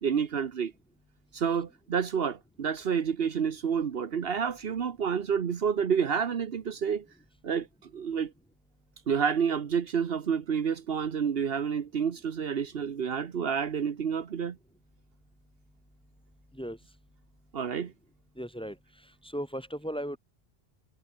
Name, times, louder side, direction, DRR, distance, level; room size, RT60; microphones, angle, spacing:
voice 1, 0.0-0.7 1.3-7.1 7.4-8.3 9.1-14.6 17.5-17.9, right 7 dB, 65° right, 1.2 m, -29 dB
voice 2, 18.4-20.2, equal, 5° left, 2.4 m, -37 dB
omnidirectional pair, 1.1 m